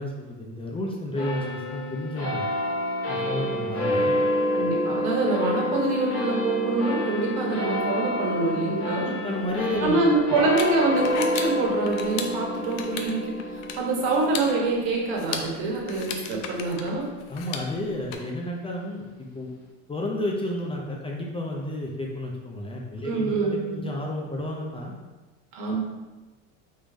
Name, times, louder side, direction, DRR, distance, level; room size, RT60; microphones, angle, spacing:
voice 1, 0.0-2.5 3.1-4.1 9.0-10.0 17.3-19.0 19.3-19.5 19.9-24.9, left 1 dB, 15° left, -1 dB, 0.5 m, -31 dB
sound 1, 1.2-17.9, equal, 35° left, 1.2 m, -29 dB
voice 2, 4.5-9.1 9.8-17.1 23.0-23.8 25.5-25.8, right 2 dB, 70° right, -1 dB, 1.3 m, -25 dB
sound 2, 9.4-18.1, left 6 dB, 85° left, 0.7 m, -37 dB
3.7 x 3.2 x 3.8 m, 1.2 s
supercardioid pair, 115°, 38 cm